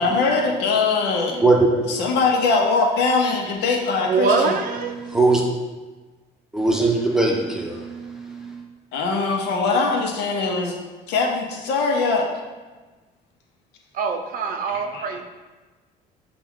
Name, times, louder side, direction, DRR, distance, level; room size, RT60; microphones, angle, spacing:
voice 1, 0.0-1.4 1.9-4.5 8.9-10.8 11.1-12.3 14.7-15.2, left 4 dB, 80° left, 1 dB, 0.8 m, -22 dB
voice 2, 1.3-1.9 5.0-5.4 6.5-8.6, right 2 dB, 5° right, -1 dB, 0.7 m, -20 dB
voice 3, 4.0-4.9 13.9-15.2, right 4 dB, 55° right, 5 dB, 0.5 m, -23 dB
5.8 x 2.4 x 3.6 m, 1.3 s
cardioid pair, 110°, 17 cm